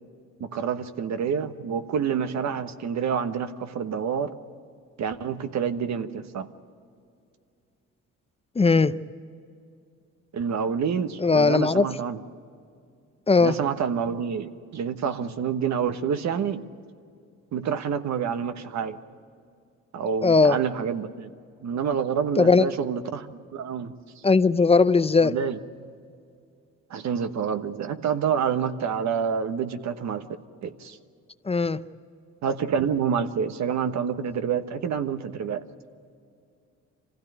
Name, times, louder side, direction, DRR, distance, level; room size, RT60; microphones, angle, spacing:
voice 1, 0.4-4.3 5.0-6.5 10.3-12.2 13.4-16.6 17.5-19.0 19.9-21.3 21.6-23.9 25.2-25.6 26.9-30.3 30.6-31.0 32.4-35.6, right 7 dB, 65° right, 9 dB, 1.2 m, -28 dB
voice 2, 8.6-9.0 11.2-11.8 13.3-13.6 20.2-20.6 22.4-22.7 24.2-25.4 31.5-31.8, left 4 dB, 20° left, 14 dB, 0.6 m, -19 dB
25.5 x 16.0 x 9.5 m, 2.4 s
cardioid pair, 90°, 30 cm